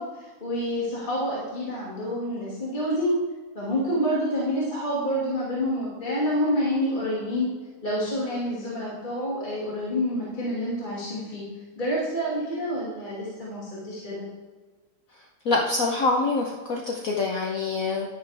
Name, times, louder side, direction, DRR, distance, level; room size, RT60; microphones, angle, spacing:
voice 1, 0.0-3.2 3.5-7.5 7.8-11.4 11.8-14.3, equal, 25° left, -7 dB, 2.5 m, -28 dB
voice 2, 15.4-18.1, left 3 dB, 55° left, 0 dB, 1.3 m, -25 dB
11.5 x 10.0 x 3.5 m, 1.3 s
omnidirectional pair, 1.9 m